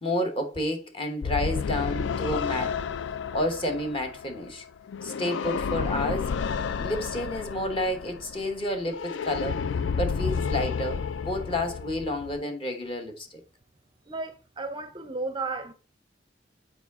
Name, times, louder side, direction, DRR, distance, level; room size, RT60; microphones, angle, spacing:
voice 1, 0.0-2.8 3.3-4.7 5.0-6.3 6.8-9.6 10.0-13.4, left 1 dB, 30° left, 1.0 m, -30 dB
sound 1, 1.2-12.4, left 6 dB, 75° left, 0.3 m, -31 dB
voice 2, 14.1-15.7, right 3 dB, 25° right, 0.5 m, -33 dB
7.0 x 4.7 x 3.5 m
head